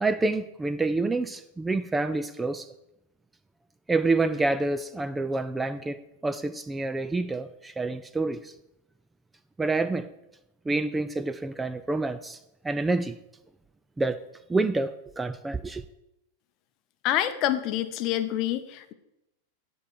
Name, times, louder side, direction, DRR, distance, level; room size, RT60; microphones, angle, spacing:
voice 1, 0.0-2.7 3.9-8.5 9.6-10.1 10.7-12.4 12.6-13.2 14.0-14.2 14.5-15.8, right 3 dB, 10° right, 0.4 m, -27 dB
voice 2, 17.0-18.9, left 12 dB, 40° left, 0.7 m, -27 dB
9.0 x 4.5 x 6.6 m
figure-of-eight pair, 90°, 0 cm